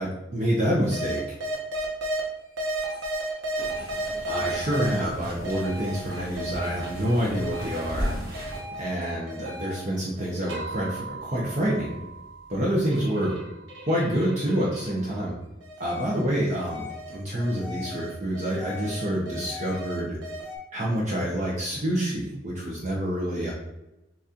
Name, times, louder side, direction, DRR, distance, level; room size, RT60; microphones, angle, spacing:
voice 1, 0.0-1.4 4.3-8.1 8.8-12.0 12.5-13.3 13.9-15.4 15.8-20.2 20.7-23.5, equal, 35° right, -4 dB, 0.8 m, -27 dB
sound 1, 0.9-2.2 2.6-5.0 5.4-8.1 8.3-15.2 15.6-20.6, right 1 dB, 70° right, 1.1 m, -35 dB
sound 2, 3.6-8.6, equal, 55° right, 1.6 m, -36 dB
7.1 x 2.5 x 2.9 m, 0.94 s
head